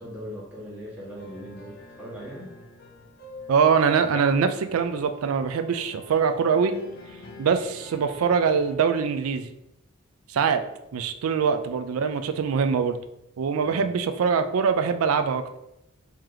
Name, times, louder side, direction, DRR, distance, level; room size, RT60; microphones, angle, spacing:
voice 1, 0.0-2.5 13.6-13.9, equal, 5° right, -7 dB, 1.2 m, -39 dB
sound 1, 1.2-8.8, left 2 dB, 45° left, 0.6 m, -45 dB
voice 2, 3.5-6.8 7.4-9.5 10.3-10.6 10.9-13.0 13.4-15.5, right 6 dB, 85° right, 9 dB, 0.4 m, -23 dB
3.1 x 2.8 x 3.8 m, 0.84 s
head